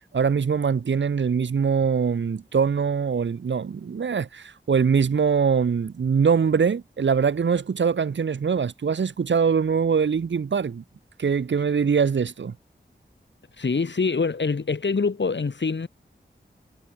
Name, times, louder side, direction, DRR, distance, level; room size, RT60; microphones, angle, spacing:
voice 1, 0.1-10.8 11.2-12.5, right 6 dB, 80° right, 1.0 m, -23 dB
voice 2, 13.6-15.9, left 4 dB, 75° left, 5.5 m, -25 dB
wide cardioid pair, 75°, 19 cm